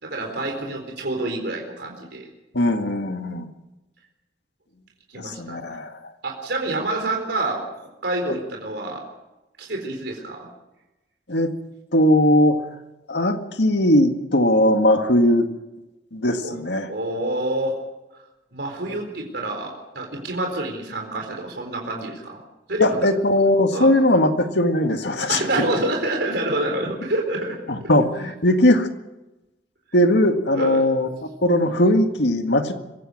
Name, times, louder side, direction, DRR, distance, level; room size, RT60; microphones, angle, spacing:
voice 1, 0.0-2.3 5.1-5.8 6.2-9.0 9.6-10.5 16.4-16.5 16.9-17.8 18.5-22.4 22.7-23.0 23.7-23.9 25.3-27.9 30.5-30.8, right 2 dB, 75° right, 1 dB, 4.2 m, -27 dB
voice 2, 2.5-3.5 5.2-6.0 11.3-11.5 11.9-12.6 13.1-15.5 16.1-17.0 18.9-19.0 22.8-25.4 27.7-28.9 29.9-31.1 31.4-32.7, left 1 dB, 80° left, 6 dB, 1.9 m, -19 dB
25.0 x 16.0 x 6.6 m, 1.0 s
head